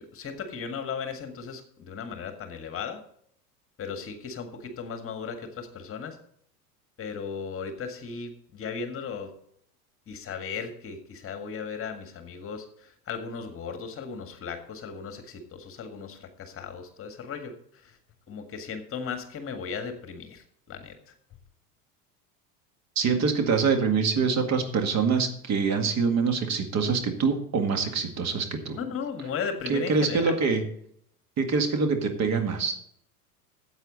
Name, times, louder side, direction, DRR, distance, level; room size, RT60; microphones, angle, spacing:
voice 1, 0.0-3.0 3.8-6.2 7.0-9.3 10.1-18.0 18.3-21.1 28.8-30.4, left 6 dB, 30° left, 7 dB, 1.8 m, -36 dB
voice 2, 23.0-28.8 29.7-30.6 31.4-32.7, right 5 dB, 35° right, 5 dB, 2.0 m, -25 dB
14.5 x 8.3 x 4.0 m, 0.66 s
figure-of-eight pair, 80°, 47 cm